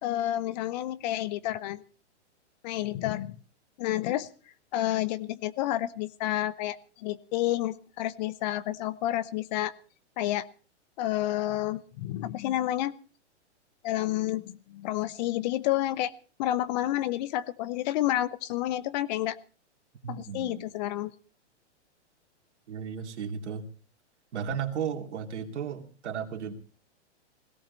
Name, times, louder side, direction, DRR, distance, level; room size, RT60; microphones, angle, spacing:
voice 1, 0.0-1.8 2.6-3.4 3.8-4.3 4.7-9.7 10.2-10.5 11.0-12.9 13.8-16.1 16.4-19.4 20.1-21.1, left 14 dB, 40° left, 18 dB, 0.7 m, -30 dB
voice 2, 20.0-20.7 22.7-23.7 24.3-26.5, right 7 dB, 70° right, 4 dB, 2.8 m, -34 dB
17.5 x 17.5 x 4.0 m, 0.37 s
hypercardioid pair, 140°, 35 cm